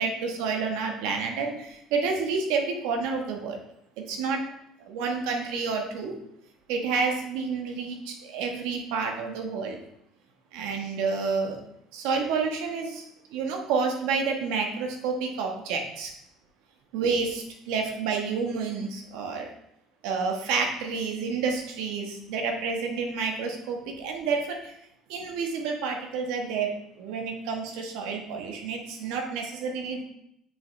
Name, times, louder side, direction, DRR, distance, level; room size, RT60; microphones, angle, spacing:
voice 1, 0.0-3.6 4.1-4.5 4.8-6.1 6.7-9.8 10.5-11.6 11.9-13.0 13.3-16.1 16.9-19.5 20.0-24.7 25.1-30.0, right 5 dB, 85° right, 3 dB, 1.3 m, -29 dB
6.8 x 5.1 x 3.3 m, 0.76 s
cardioid pair, 125°, 0 cm